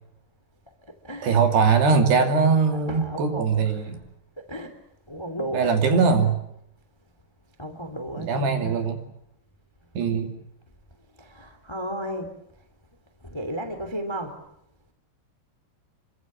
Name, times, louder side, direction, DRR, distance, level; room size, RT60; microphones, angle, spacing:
voice 1, 0.7-1.4 2.7-4.1 4.4-4.8 5.1-6.4 7.6-8.9 10.9-12.7 13.2-14.4, equal, 10° left, 1.7 m, -35 dB
voice 2, 1.2-4.0 5.5-6.3 8.2-9.0 10.0-10.3, right 5 dB, 65° right, 4.5 m, -21 dB
28.0 x 24.5 x 7.6 m
omnidirectional pair, 5.4 m